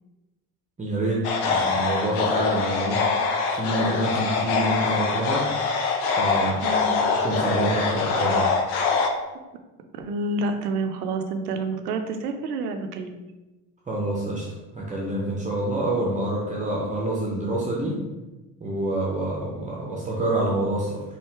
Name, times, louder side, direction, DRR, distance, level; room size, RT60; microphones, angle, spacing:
voice 1, 0.8-3.1 3.5-5.5 6.1-6.6 7.2-8.5 13.9-14.5 14.7-18.0 18.6-21.0, right 1 dB, 15° right, -3 dB, 0.7 m, -27 dB
sound 1, 1.2-9.1, left 4 dB, 60° left, 0.7 m, -24 dB
voice 2, 6.6-7.0 8.9-9.0 10.0-13.3, right 2 dB, 70° right, 6 dB, 0.6 m, -29 dB
4.5 x 2.7 x 3.2 m, 1.1 s
figure-of-eight pair, 55°, 48 cm